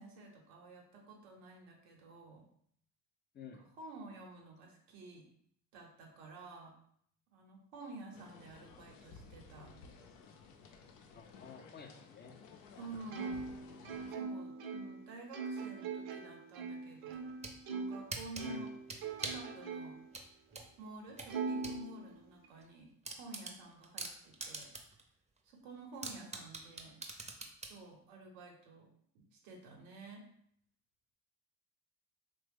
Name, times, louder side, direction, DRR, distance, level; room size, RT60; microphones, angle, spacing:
voice 1, 0.0-2.5 3.8-5.3 5.7-6.8 7.3-9.7 12.8-13.6 14.1-17.3 17.7-18.7 19.2-20.0 20.8-22.9 23.2-24.7 25.4-27.0 27.7-28.9 29.1-30.3, right 2 dB, 90° right, 0 dB, 0.8 m, -51 dB
voice 2, 3.3-3.7 11.1-12.4 18.4-18.7, left 6 dB, 30° left, 4 dB, 0.4 m, -51 dB
sound 1, 8.1-14.1, left 5 dB, 90° left, 0.5 m, -55 dB
Plucked string instrument, 13.1-18.1 18.4-20.1 20.5-20.6 21.3-22.5, right 4 dB, 60° right, 0.6 m, -41 dB
sound 2, 17.1-17.6 18.1-19.5 20.1-21.8 22.2-22.3 22.6-22.7 23.0-25.0 25.4-25.5 26.0-27.8, right 3 dB, 20° right, 0.5 m, -43 dB
3.1 x 2.1 x 3.3 m, 0.66 s
supercardioid pair, 70°, 38 cm